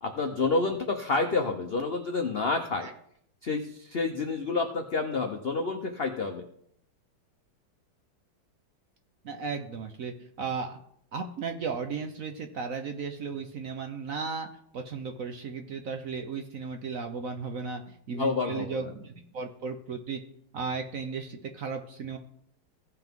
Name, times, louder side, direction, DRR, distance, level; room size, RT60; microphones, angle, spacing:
voice 1, 0.0-2.9 3.4-6.5 18.1-18.9, left 3 dB, 90° left, 5 dB, 0.5 m, -29 dB
voice 2, 9.2-10.8 11.1-14.5 14.7-20.2 20.5-22.2, right 5 dB, 60° right, 6 dB, 0.9 m, -35 dB
16.5 x 5.9 x 3.6 m, 0.68 s
omnidirectional pair, 2.1 m